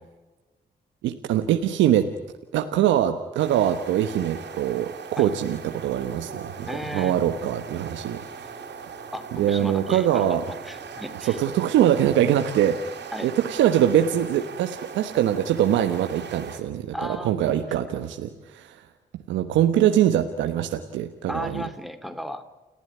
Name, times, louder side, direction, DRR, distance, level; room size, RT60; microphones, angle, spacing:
voice 1, 1.0-2.1 2.5-6.7 6.9-8.6 9.3-10.4 11.1-18.9 19.3-21.7, right 11 dB, 85° right, 7 dB, 1.2 m, -23 dB
sound 1, 3.4-16.6, right 6 dB, 70° right, 3.6 m, -40 dB
Bowed string instrument, 6.4-11.2, left 2 dB, 55° left, 5.5 m, -49 dB
voice 2, 6.7-7.1 9.1-10.4 10.7-11.4 13.1-13.3 16.9-17.6 21.3-22.4, equal, ahead, 10 dB, 3.0 m, -35 dB
30.0 x 15.5 x 9.4 m, 1.2 s
supercardioid pair, 45°, 19 cm